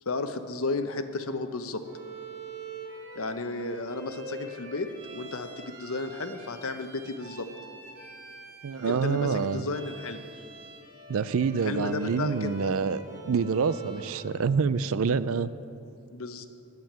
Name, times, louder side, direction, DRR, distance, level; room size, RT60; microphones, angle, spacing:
voice 1, 0.1-1.8 3.2-7.5 8.9-10.2 11.6-12.5 16.1-16.5, left 3 dB, 65° left, 8 dB, 0.9 m, -33 dB
Bowed string instrument, 1.8-14.4, right 3 dB, 90° right, 2.7 m, -45 dB
voice 2, 8.6-9.6 11.1-15.5, right 5 dB, 65° right, 15 dB, 0.4 m, -27 dB
10.5 x 9.1 x 8.7 m, 2.6 s
head